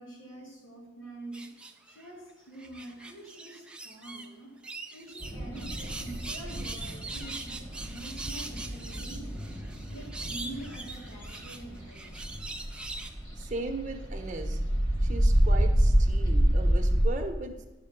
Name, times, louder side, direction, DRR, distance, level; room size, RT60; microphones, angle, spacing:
voice 1, 0.0-1.5 1.9-4.5 4.9-9.2 9.9-12.2, right 1 dB, 90° left, -3 dB, 3.3 m, -45 dB
sound 1, 1.3-2.1 2.5-4.3 4.6-13.1, right 3 dB, 5° right, 0.5 m, -42 dB
sound 2, 5.2-17.1, equal, 20° left, 1.4 m, -28 dB
voice 2, 13.4-14.6 15.0-17.7, right 2 dB, 40° right, 3 dB, 1.0 m, -37 dB
10.0 x 6.5 x 5.2 m, 1.2 s
head